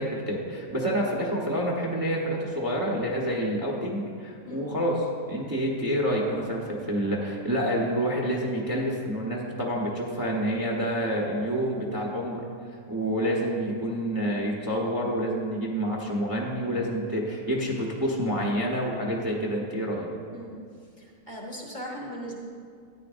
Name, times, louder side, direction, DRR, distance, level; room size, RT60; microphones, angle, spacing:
voice 1, 0.0-12.4 12.9-20.1, equal, 15° right, -3 dB, 0.9 m, -28 dB
voice 2, 21.0-22.4, equal, 35° left, -3 dB, 1.3 m, -38 dB
13.5 x 9.6 x 2.6 m, 2.2 s
omnidirectional pair, 1.6 m